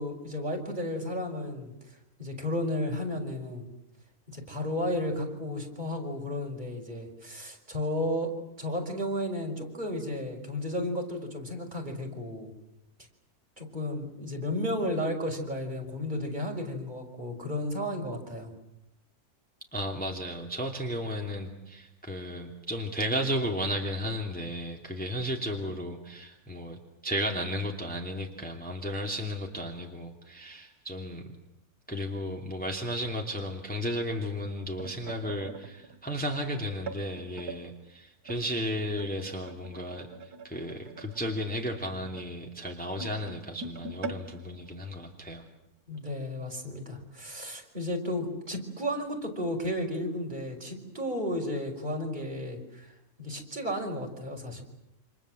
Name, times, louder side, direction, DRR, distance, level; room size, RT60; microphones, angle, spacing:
voice 1, 0.0-1.7 2.2-3.7 4.3-8.3 8.6-12.5 13.6-18.5 45.9-52.9 53.2-54.6, left 1 dB, 30° right, 1 dB, 5.2 m, -33 dB
voice 2, 19.7-31.2 31.9-45.5, equal, 5° left, 1 dB, 2.6 m, -34 dB
sound 1, 34.6-37.6 38.3-45.6 45.9-46.1 46.4-46.7 47.4-47.5, right 4 dB, 85° right, 2.0 m, -44 dB
29.0 x 26.5 x 7.7 m, 0.85 s
omnidirectional pair, 1.6 m